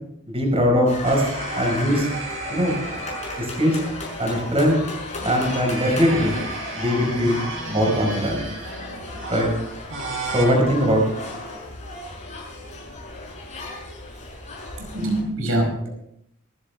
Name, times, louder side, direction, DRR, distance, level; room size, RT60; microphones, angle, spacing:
voice 1, 0.3-1.3 1.6-2.1 2.5-2.8 3.4-3.8 4.2-4.8 5.2-6.4 6.7-7.4 7.7-8.4 9.3-9.5 10.3-11.0, equal, 25° right, 0 dB, 5.1 m, -20 dB
sound 1, 0.9-15.2, left 2 dB, 35° left, 6.2 m, -35 dB
sound 2, 1.0-4.6 5.2-10.5, right 3 dB, 60° right, 5.6 m, -34 dB
voice 2, 14.8-15.9, right 1 dB, 80° right, 0 dB, 5.1 m, -24 dB
26.0 x 11.0 x 3.5 m, 0.73 s
head